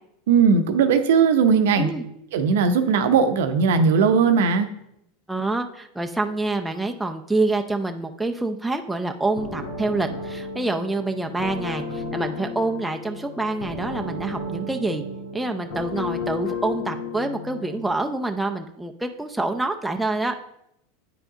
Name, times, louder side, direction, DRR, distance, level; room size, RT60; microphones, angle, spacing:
voice 1, 0.3-1.9 2.3-4.7, right 5 dB, 75° right, 8 dB, 0.7 m, -18 dB
voice 2, 5.3-15.0 15.3-20.4, right 2 dB, 5° right, 3 dB, 0.5 m, -26 dB
sound 1, 9.3-17.9, left 2 dB, 85° left, 2.0 m, -33 dB
8.9 x 4.8 x 3.8 m, 0.78 s
hypercardioid pair, 110°, 0 cm